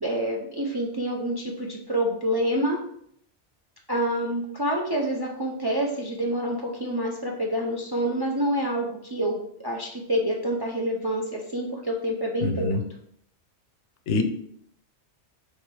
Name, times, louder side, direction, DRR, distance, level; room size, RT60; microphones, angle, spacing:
voice 1, 0.0-2.8 3.9-12.7, right 1 dB, 35° right, -1 dB, 0.3 m, -27 dB
voice 2, 12.4-12.8 14.1-14.2, left 3 dB, 80° left, 7 dB, 0.9 m, -24 dB
3.4 x 3.3 x 4.6 m, 0.69 s
omnidirectional pair, 1.2 m